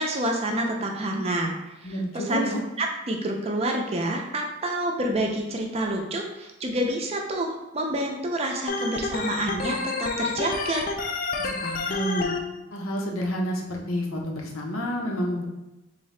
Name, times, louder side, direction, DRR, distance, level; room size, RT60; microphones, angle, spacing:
voice 1, 0.0-1.5 1.8-2.5 2.8-10.9, right 1 dB, 30° right, 2 dB, 0.5 m, -28 dB
voice 2, 1.8-2.6 11.4-12.3 12.7-15.4, equal, 85° left, 0 dB, 0.7 m, -29 dB
Organ, 8.7-12.4, left 3 dB, 40° left, 0.3 m, -29 dB
3.9 x 2.7 x 3.2 m, 0.99 s
head